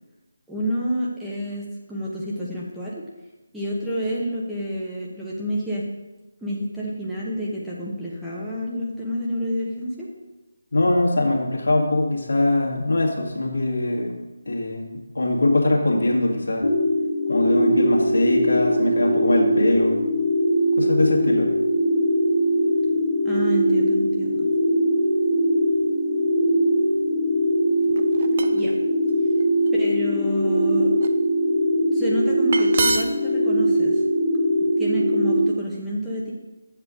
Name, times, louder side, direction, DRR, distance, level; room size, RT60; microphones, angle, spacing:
voice 1, 0.5-3.0 3.5-5.9 6.4-10.1 23.2-24.5 28.5-28.7 29.7-30.9 31.9-34.0 34.8-36.3, equal, ahead, -8 dB, 1.1 m, -29 dB
voice 2, 10.7-14.2 14.5-16.7 17.3-20.0 20.8-21.5, left 2 dB, 65° left, -1 dB, 1.8 m, -22 dB
sound 1, 16.6-35.4, equal, 80° left, 1.4 m, -21 dB
sound 2, 27.9-28.7 29.4-29.7 30.3-31.1 32.2-32.3 32.5-33.3, right 4 dB, 40° right, 0.6 m, -26 dB
9.3 x 7.4 x 3.8 m, 1.1 s
figure-of-eight pair, 155°, 0 cm